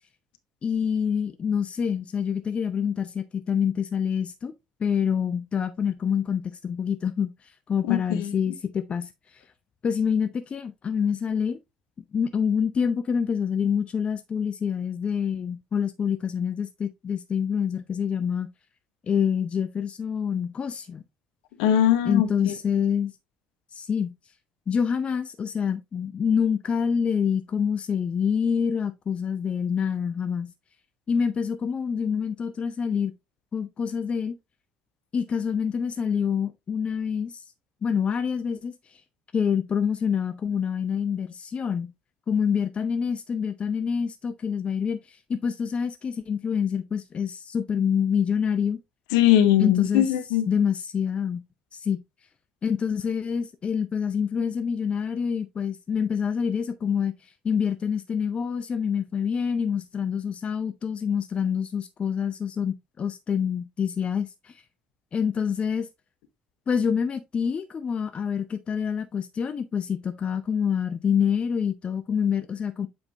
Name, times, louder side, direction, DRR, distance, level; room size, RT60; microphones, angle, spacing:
voice 1, 0.6-4.5 4.8-7.3 7.7-9.4 9.8-11.6 12.1-18.5 19.0-21.0 22.0-23.1 23.7-24.1 24.7-30.5 31.1-33.1 33.5-34.4 35.1-37.4 37.8-38.7 39.3-41.9 42.3-48.8 49.6-50.1 50.5-51.4 51.7-52.0 52.6-57.1 57.4-64.5 65.1-65.9 66.7-72.9, left 7 dB, 35° left, 0.6 m, -26 dB
voice 2, 7.9-8.3 21.6-22.5 49.1-50.5, left 11 dB, 65° left, 1.0 m, -21 dB
7.2 x 5.2 x 2.8 m
figure-of-eight pair, 55°, 3 cm